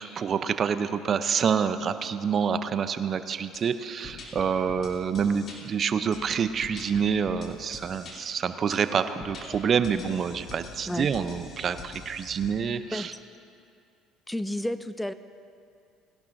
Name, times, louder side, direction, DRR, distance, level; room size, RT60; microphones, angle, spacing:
voice 1, 0.0-13.1, right 7 dB, 45° right, 11 dB, 0.6 m, -27 dB
sound 1, 3.5-3.6 4.0-5.6 6.1-8.2 8.7-8.8 9.2-12.5, left 3 dB, 50° left, 2.8 m, -44 dB
voice 2, 14.3-15.1, left 1 dB, 5° left, 12 dB, 0.4 m, -31 dB
20.0 x 11.5 x 2.6 m, 2.5 s
supercardioid pair, 75°, 0 cm